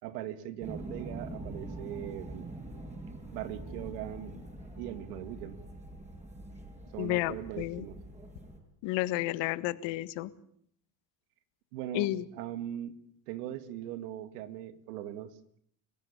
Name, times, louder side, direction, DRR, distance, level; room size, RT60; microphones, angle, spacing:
voice 1, 0.0-2.5 3.3-4.3 4.8-5.6 6.9-8.0 11.7-13.0 13.3-15.6, right 11 dB, 85° right, 13 dB, 2.3 m, -40 dB
sound 1, 0.6-8.6, right 2 dB, 15° right, 7.9 m, -44 dB
voice 2, 7.0-7.8 8.8-10.3 11.9-12.2, left 17 dB, 70° left, 16 dB, 1.7 m, -31 dB
30.0 x 16.0 x 8.8 m, 0.67 s
supercardioid pair, 90°, 45 cm